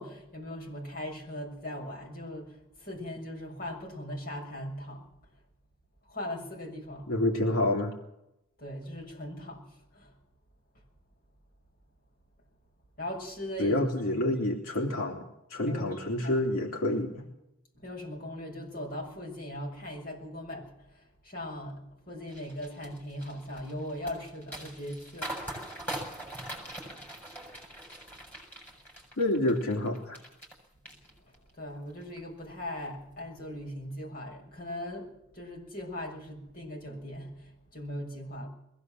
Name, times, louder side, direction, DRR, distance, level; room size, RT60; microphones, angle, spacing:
voice 1, 0.0-5.0 6.0-7.1 8.6-9.7 9.9-10.1 13.0-13.8 14.1-14.2 15.6-16.5 17.7-25.3 31.6-38.5, left 1 dB, 45° left, 6.4 m, -39 dB
voice 2, 7.1-7.9 13.6-15.2 15.5-17.3 29.2-30.2, left 1 dB, 80° left, 3.0 m, -28 dB
sound 1, 22.3-30.6 30.9-31.5 31.9-32.2, right 1 dB, 5° left, 7.2 m, -42 dB
22.0 x 16.5 x 7.7 m
head